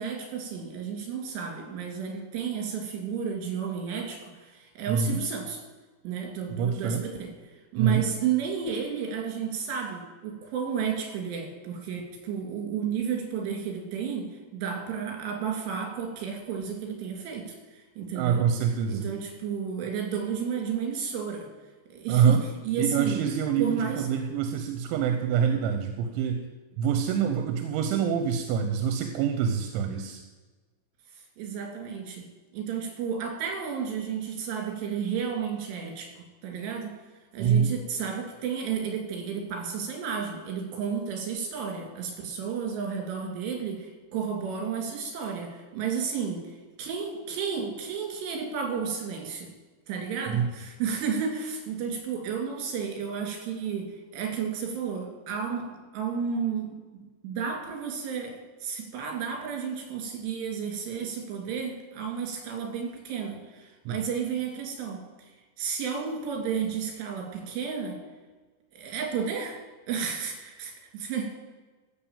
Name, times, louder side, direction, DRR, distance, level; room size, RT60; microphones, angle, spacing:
voice 1, 0.0-5.6 6.0-7.3 7.7-14.3 14.5-18.5 18.9-21.5 21.9-23.2 23.6-24.0 31.4-32.2 32.5-36.9 37.3-49.5 49.9-53.9 54.1-65.0 65.6-68.0 68.7-69.6 69.9-71.2, right 7 dB, 70° right, 2 dB, 4.3 m, -32 dB
voice 2, 4.9-5.2 6.5-7.1 7.8-8.1 18.1-19.1 22.1-22.4 22.8-26.5 26.8-30.2 37.4-37.7 50.3-50.4 63.9-64.0, right 7 dB, 85° right, 6 dB, 3.1 m, -26 dB
14.0 x 5.3 x 7.2 m, 1.3 s
omnidirectional pair, 5.3 m